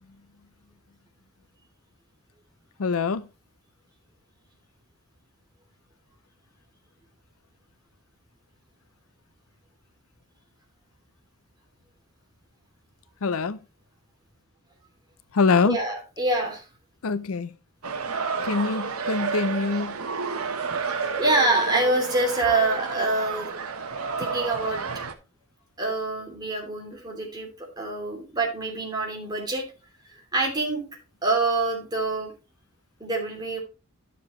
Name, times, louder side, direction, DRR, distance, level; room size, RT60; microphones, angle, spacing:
voice 1, 2.8-3.3 13.2-13.6 15.3-15.8 17.0-17.5 18.4-20.0, left 4 dB, 75° left, 0.5 m, -24 dB
voice 2, 15.6-16.6 21.2-23.5 24.2-24.8 25.8-29.6 30.1-30.8 31.2-32.3 33.0-33.6, right 2 dB, 20° right, 2.7 m, -26 dB
sound 1, 17.8-25.1, right 4 dB, 85° right, 1.1 m, -30 dB
11.5 x 6.9 x 3.0 m
head